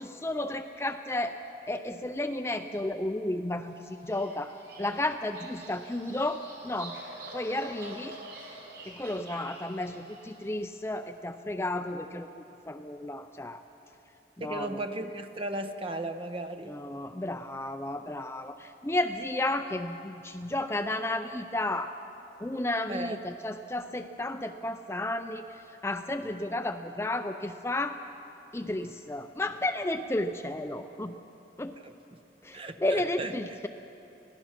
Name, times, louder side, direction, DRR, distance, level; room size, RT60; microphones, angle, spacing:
voice 1, 0.0-1.4 1.7-7.0 7.3-8.2 8.9-12.3 12.7-13.6 14.4-14.8 16.7-21.9 22.4-28.0 28.5-31.2 31.6-31.8 32.4-33.7, left 1 dB, 15° left, 7 dB, 0.4 m, -32 dB
Bird vocalization bird call bird song, 3.8-10.5, right 2 dB, 60° right, 6.2 m, -47 dB
voice 2, 14.4-16.8 22.9-23.2 31.8-32.2 32.5-33.4, right 2 dB, 30° right, 7 dB, 0.9 m, -36 dB
25.0 x 17.5 x 6.0 m, 3.0 s
head